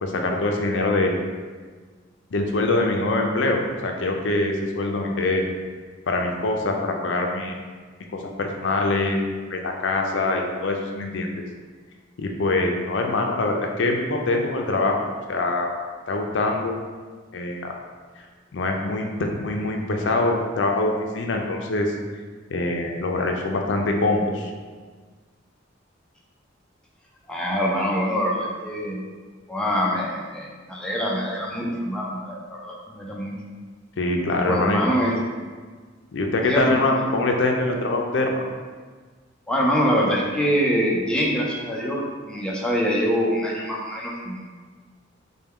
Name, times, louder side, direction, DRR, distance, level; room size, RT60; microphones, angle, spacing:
voice 1, 0.0-1.1 2.3-5.4 6.1-7.6 8.1-9.2 9.5-11.3 12.2-15.0 15.3-15.7 16.1-16.8 17.3-17.7 18.5-21.9 22.5-24.5 34.0-34.8 36.1-38.4, left 2 dB, 65° left, 2 dB, 0.5 m, -24 dB
voice 2, 27.3-29.0 29.5-33.3 34.3-35.2 36.4-36.7 37.0-37.1 39.5-44.4, equal, 5° left, -3 dB, 0.5 m, -24 dB
4.4 x 2.2 x 3.5 m, 1.5 s
head